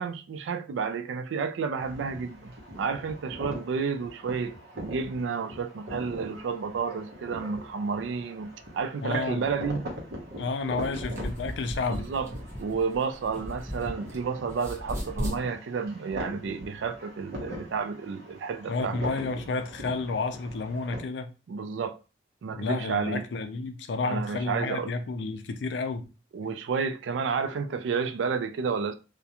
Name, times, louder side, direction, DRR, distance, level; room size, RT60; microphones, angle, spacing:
voice 1, 0.0-8.5 8.7-9.8 11.9-12.3 12.6-19.2 21.5-22.0 22.4-23.2 24.0-24.9 26.3-28.9, right 5 dB, 85° right, 0.3 m, -31 dB
sound 1, 1.8-21.0, equal, 65° right, 0.8 m, -42 dB
voice 2, 9.0-9.4 10.4-12.1 18.7-21.3 22.5-26.0, left 3 dB, 70° left, 0.4 m, -31 dB
sound 2, 10.8-14.2 14.5-15.4, equal, 15° right, 0.8 m, -36 dB
2.3 x 2.1 x 2.8 m
head